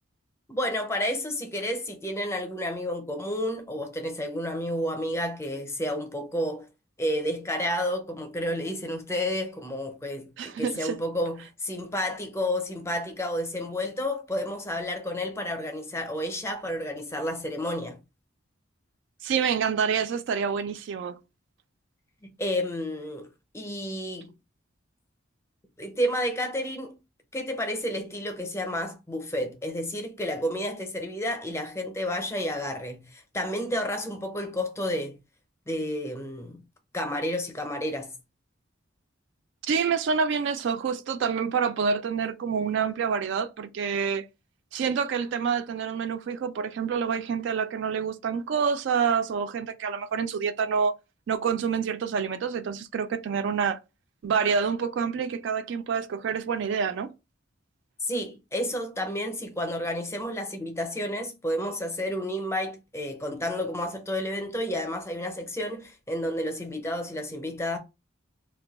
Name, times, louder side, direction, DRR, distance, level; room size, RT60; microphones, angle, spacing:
voice 1, 0.5-6.7 7.0-18.0 22.2-24.3 25.8-27.0 27.3-35.2 35.7-36.6 36.9-38.2 58.0-67.8, left 1 dB, 15° left, 0.5 m, -31 dB
voice 2, 10.4-11.0 19.2-21.2 39.6-44.3 44.7-50.9 51.3-53.8 54.2-57.1, right 6 dB, 60° right, 0.3 m, -27 dB
2.5 x 2.2 x 4.0 m
head